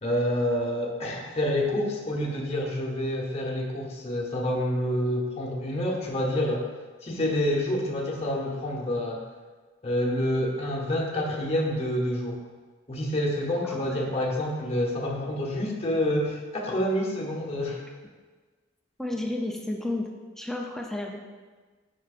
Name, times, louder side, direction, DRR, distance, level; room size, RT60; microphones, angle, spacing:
voice 1, 0.0-6.7 7.0-9.2 9.8-12.4 12.9-17.8, left 1 dB, 35° left, -1 dB, 0.9 m, -28 dB
voice 2, 13.6-14.1 19.0-21.2, left 1 dB, ahead, 1 dB, 0.4 m, -32 dB
9.7 x 4.6 x 2.5 m, 1.4 s
head